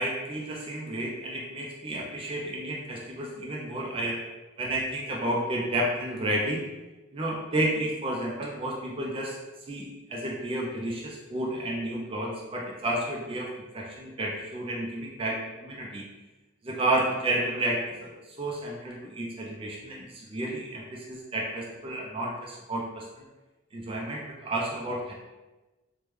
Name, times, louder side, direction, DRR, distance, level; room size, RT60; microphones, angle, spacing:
voice 1, 0.0-4.2 4.6-6.6 7.1-9.4 9.7-16.0 16.6-23.3 23.7-25.1, right 1 dB, 25° right, -2 dB, 0.3 m, -31 dB
3.3 x 2.1 x 3.0 m, 1.1 s
head